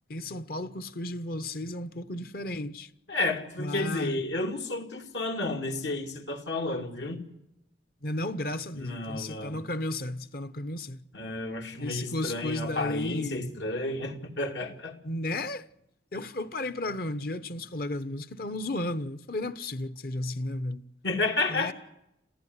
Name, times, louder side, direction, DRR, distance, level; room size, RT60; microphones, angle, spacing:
voice 1, 0.1-2.9 3.6-4.2 8.0-11.0 11.8-13.5 15.0-15.7 16.1-20.8 21.5-21.7, left 1 dB, 55° left, 1.0 m, -34 dB
voice 2, 3.1-7.3 8.7-9.6 11.1-14.9 21.0-21.7, left 2 dB, 85° left, 2.8 m, -31 dB
27.5 x 15.0 x 9.6 m
head